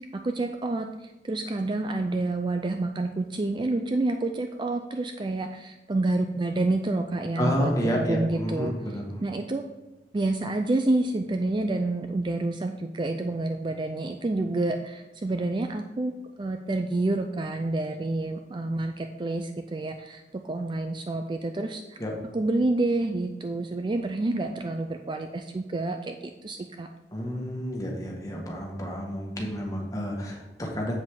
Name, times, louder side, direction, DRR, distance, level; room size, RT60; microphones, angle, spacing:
voice 1, 0.1-8.7 9.2-9.6 10.1-16.1 16.4-22.0 22.3-26.9, right 2 dB, 25° right, 5 dB, 0.4 m, -28 dB
voice 2, 7.4-9.2 22.0-22.1 27.1-31.0, equal, 20° left, -1 dB, 1.7 m, -30 dB
7.6 x 7.6 x 3.8 m, 1.1 s
head